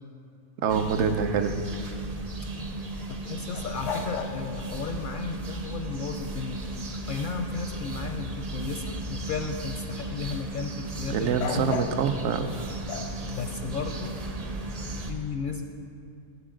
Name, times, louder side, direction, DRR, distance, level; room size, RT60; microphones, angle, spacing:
voice 1, 0.6-1.6 11.1-12.5, right 6 dB, 70° right, 8 dB, 0.9 m, -26 dB
sound 1, 0.7-15.1, right 2 dB, 40° right, 0.7 m, -35 dB
voice 2, 3.1-11.8 13.3-14.2 15.0-15.7, left 5 dB, 60° left, 5 dB, 0.6 m, -34 dB
sound 2, 3.5-5.1 11.4-12.1 12.9-14.3, left 6 dB, 85° left, 1.0 m, -36 dB
17.5 x 6.1 x 3.8 m, 2.4 s
omnidirectional pair, 1.2 m